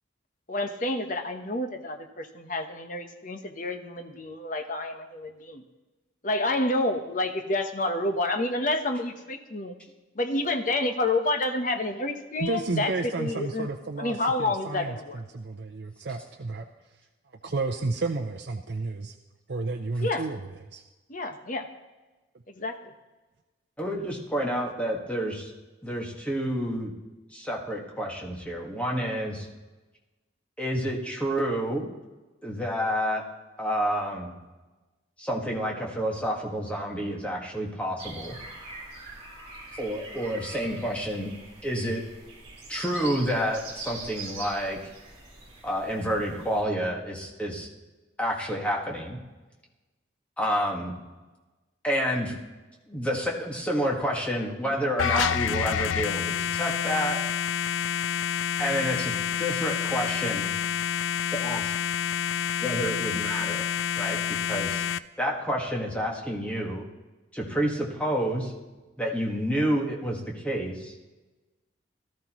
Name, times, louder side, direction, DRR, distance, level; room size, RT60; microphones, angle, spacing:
voice 1, 0.5-5.6 6.2-9.8 10.1-12.9 13.2-13.7 14.0-15.2 20.0-20.3 21.1-21.7 22.6-22.8, left 2 dB, 40° left, 6 dB, 1.0 m, -29 dB
voice 2, 12.4-16.7 17.4-19.1 19.5-20.8, right 3 dB, 55° right, 2 dB, 0.6 m, -32 dB
voice 3, 23.8-25.3 25.8-26.9 27.3-29.5 30.6-31.9 32.4-33.2 33.6-34.3 35.2-38.4 39.8-41.3 41.6-42.0 42.7-44.8 45.6-47.7 48.2-49.2 50.4-50.9 51.8-52.3 52.9-57.2 58.6-60.5 61.3-61.7 62.6-63.6 63.9-64.8 65.2-66.9 67.3-68.5 69.0-70.9, equal, 5° left, -2 dB, 1.6 m, -29 dB
sound 1, 38.0-46.6, right 3 dB, 30° right, 3.1 m, -43 dB
sound 2, 55.0-65.0, left 8 dB, 85° left, 0.4 m, -28 dB
18.0 x 13.0 x 3.1 m, 1.2 s
head